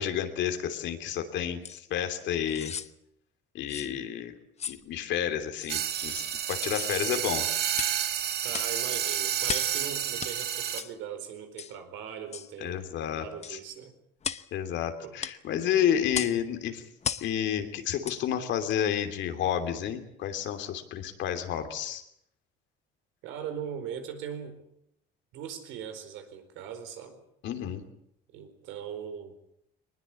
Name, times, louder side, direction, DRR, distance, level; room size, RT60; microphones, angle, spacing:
voice 1, 0.0-2.7 3.5-4.3 4.7-6.2 6.5-7.5 12.6-13.6 14.5-16.9 17.2-22.0 27.4-27.8, left 9 dB, 70° left, 7 dB, 3.1 m, -30 dB
sound 1, 1.6-1.8 2.5-2.9 3.7-3.9 4.6-4.8 5.6-5.7 6.6-7.0 7.7-8.0 8.5-8.8 9.5-9.8 10.2-10.3 10.8-10.9 11.6-11.8 12.3-12.5 13.4-13.6 14.2-14.5 15.2-15.4 16.1-16.4 17.0-17.3 18.0-18.2 18.7-18.8, left 7 dB, 35° left, 0.9 m, -36 dB
sound 2, 5.7-10.8, right 10 dB, 55° right, 1.6 m, -30 dB
voice 2, 8.4-12.9 13.1-13.9 15.0-15.1 23.2-24.6 25.3-27.2 28.3-29.4, right 8 dB, 85° right, 7 dB, 4.6 m, -40 dB
21.5 x 20.5 x 8.5 m, 0.73 s
cardioid pair, 115°, 20 cm